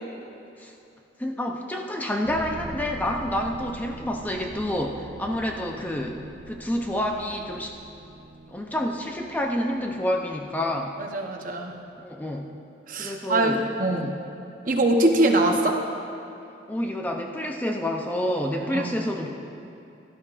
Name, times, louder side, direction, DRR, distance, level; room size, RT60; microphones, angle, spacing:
voice 1, 1.2-7.8 8.5-11.0 12.0-12.6 13.0-13.6 13.9-14.3 16.7-19.3, left 1 dB, 10° left, 1 dB, 0.5 m, -28 dB
sound 1, 2.2-11.1, right 2 dB, 85° right, 0.7 m, -43 dB
voice 2, 11.0-11.8 12.9-14.1 14.6-15.8 18.6-18.9, right 1 dB, 45° right, 3 dB, 0.9 m, -23 dB
16.5 x 12.0 x 2.5 m, 2.7 s
head